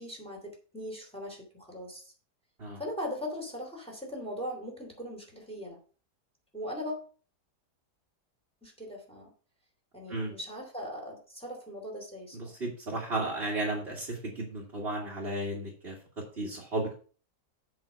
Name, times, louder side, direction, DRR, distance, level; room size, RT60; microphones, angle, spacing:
voice 1, 0.0-2.1 2.8-5.8 6.5-7.0 8.6-9.3 9.9-12.5, equal, 5° left, -1 dB, 3.0 m, -39 dB
voice 2, 12.3-17.0, right 2 dB, 35° right, -4 dB, 2.3 m, -34 dB
8.0 x 5.7 x 5.7 m, 0.40 s
omnidirectional pair, 1.8 m